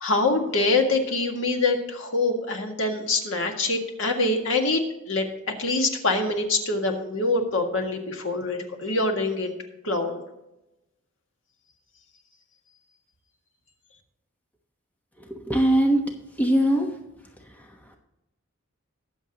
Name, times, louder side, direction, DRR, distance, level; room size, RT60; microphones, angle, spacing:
voice 1, 0.0-5.3 5.6-9.5 9.8-10.2, left 2 dB, 65° left, 2 dB, 1.8 m, -25 dB
voice 2, 15.2-16.0 16.3-17.0 17.4-18.0, right 1 dB, 10° left, 2 dB, 1.0 m, -23 dB
21.0 x 7.1 x 2.9 m, 0.93 s
head